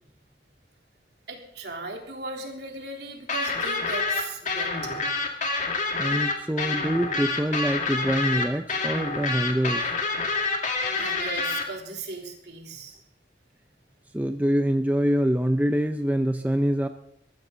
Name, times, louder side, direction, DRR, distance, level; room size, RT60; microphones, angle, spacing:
voice 1, 1.3-5.0 10.7-13.0, right 2 dB, 60° right, 1 dB, 3.4 m, -38 dB
sound 1, 3.3-11.6, left 3 dB, 40° left, 2.2 m, -27 dB
voice 2, 6.0-9.9 14.1-16.9, equal, 10° right, 7 dB, 0.6 m, -25 dB
20.5 x 14.5 x 3.9 m, 0.75 s
head